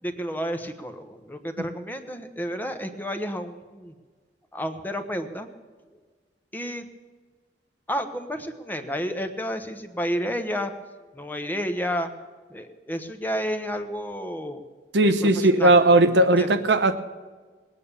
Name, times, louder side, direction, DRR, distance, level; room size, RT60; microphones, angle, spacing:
voice 1, 0.0-3.9 4.5-5.5 6.5-6.9 7.9-10.7 11.1-12.1 12.5-14.6 15.0-16.0 16.4-16.5, equal, 10° left, 7 dB, 1.1 m, -31 dB
voice 2, 14.9-17.0, right 2 dB, 75° right, 9 dB, 1.0 m, -18 dB
20.5 x 9.4 x 6.9 m, 1.4 s
head